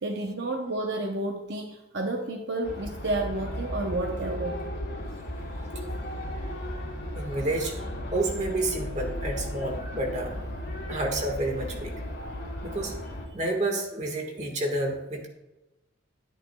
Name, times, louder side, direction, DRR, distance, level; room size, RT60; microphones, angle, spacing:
voice 1, 0.0-4.7, right 2 dB, 55° right, 2 dB, 0.8 m, -31 dB
sound 1, 2.6-13.3, equal, 65° left, 3.0 m, -35 dB
voice 2, 7.1-7.8 8.1-10.4 10.9-11.9 12.6-12.9 13.3-15.3, right 2 dB, 35° right, 2 dB, 1.5 m, -29 dB
12.0 x 10.0 x 2.3 m, 1.0 s
head